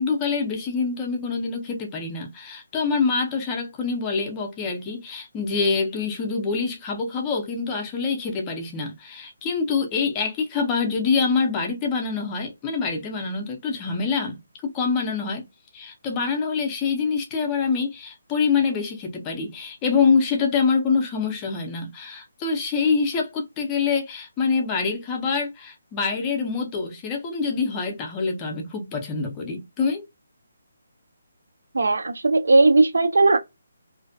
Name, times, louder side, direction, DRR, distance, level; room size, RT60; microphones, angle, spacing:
voice 1, 0.0-15.5 15.7-30.1, left 5 dB, 10° left, 0.4 m, -25 dB
voice 2, 31.7-33.4, right 3 dB, 90° right, 0.4 m, -17 dB
2.4 x 2.1 x 2.5 m
hypercardioid pair, 180°, 0 cm